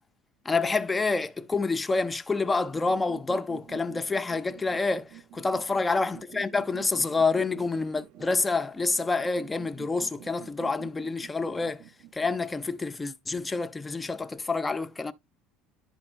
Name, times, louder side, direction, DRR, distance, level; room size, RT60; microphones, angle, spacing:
voice 1, 0.5-11.8 12.1-15.1, left 3 dB, 10° left, 0.4 m, -28 dB
sound 1, 2.7-12.4, right 12 dB, 50° right, 0.7 m, -49 dB
11.5 x 4.3 x 2.5 m
cardioid pair, 170°, 0 cm